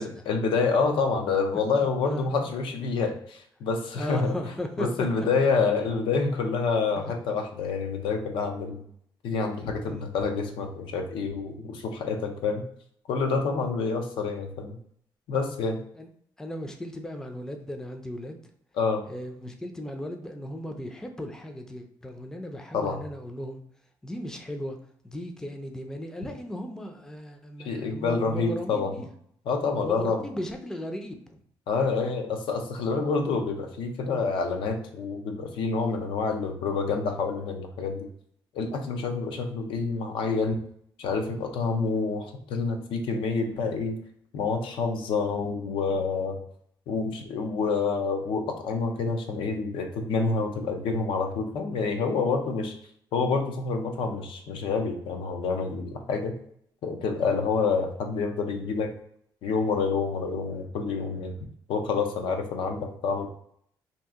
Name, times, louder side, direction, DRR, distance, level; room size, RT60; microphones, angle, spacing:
voice 1, 0.0-4.3 4.8-8.8 9.2-12.6 13.1-14.8 15.3-15.8 18.8-19.0 22.7-23.0 27.6-28.9 29.5-30.2 31.7-38.1 38.5-40.6 41.0-44.0 44.3-46.4 46.9-52.7 53.1-56.3 56.8-58.9 59.4-61.4 61.7-63.3, left 4 dB, 90° left, 4 dB, 0.6 m, -27 dB
voice 2, 1.8-2.3 3.9-5.3 7.0-7.1 9.8-10.1 13.6-13.7 15.9-16.1 16.4-18.4 19.1-23.6 24.0-24.8 25.0-29.1 29.8-31.4, equal, 5° left, 5 dB, 0.4 m, -36 dB
2.7 x 2.4 x 3.5 m, 0.66 s
cardioid pair, 130°, 8 cm